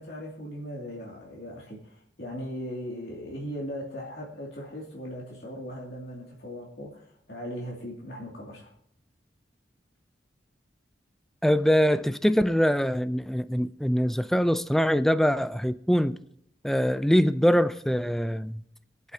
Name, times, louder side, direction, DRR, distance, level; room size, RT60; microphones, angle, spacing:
voice 1, 0.0-8.7, equal, 60° left, 2.5 m, -38 dB
voice 2, 11.4-16.2 16.6-18.6, equal, ahead, 0.4 m, -23 dB
23.0 x 8.1 x 2.8 m
head